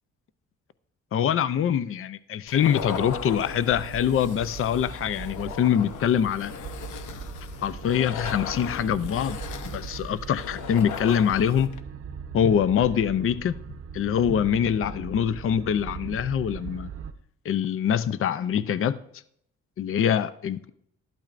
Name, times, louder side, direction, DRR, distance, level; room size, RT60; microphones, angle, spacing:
voice 1, 1.1-6.5 7.6-9.4 9.7-11.7 12.3-13.6 13.9-16.9 17.4-19.0 19.8-20.7, left 9 dB, 45° left, 0.5 m, -24 dB
sound 1, 2.5-11.8, left 7 dB, 80° left, 0.8 m, -38 dB
sound 2, 2.8-17.1, right 6 dB, 50° right, 0.8 m, -40 dB
12.0 x 12.0 x 2.5 m
cardioid pair, 90°, 30 cm